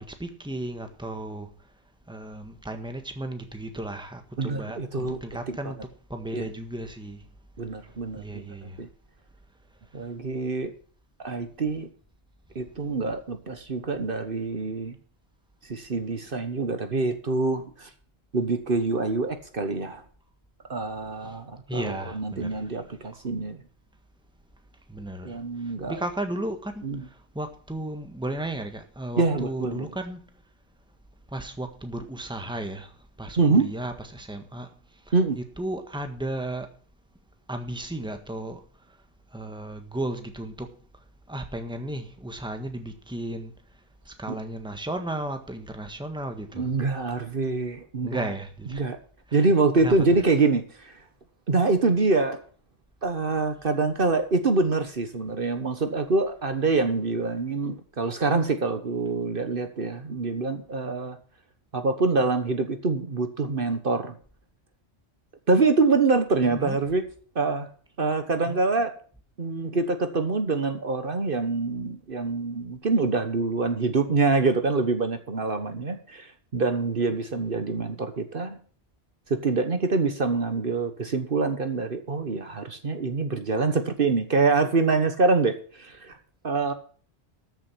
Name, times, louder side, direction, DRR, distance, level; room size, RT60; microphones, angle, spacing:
voice 1, 0.0-1.5 2.1-7.3 7.8-8.8 21.2-21.4 21.7-23.2 24.9-30.3 31.3-36.7 37.5-38.6 38.9-39.0 39.3-40.7 41.3-43.5 44.0-46.7 48.0-48.9 49.3-49.5 49.8-50.0 66.4-66.8 68.5-68.6, right 1 dB, 5° right, 1.5 m, -35 dB
voice 2, 4.4-5.2 5.5-5.7 6.3-6.5 7.6-8.4 8.8-8.9 9.9-10.7 11.2-11.9 12.5-14.9 15.7-17.9 18.3-20.0 20.7-23.6 25.2-26.0 26.8-27.0 29.1-29.9 33.4-33.7 35.1-35.4 44.3-44.4 46.5-48.3 48.7-49.0 49.3-50.9 51.5-52.4 53.0-61.2 61.7-64.2 65.5-67.0 67.3-67.7 68.0-68.9 69.4-78.6 79.3-86.2 86.4-86.7, right 3 dB, 55° right, 1.4 m, -25 dB
13.5 x 7.5 x 6.1 m
omnidirectional pair, 1.1 m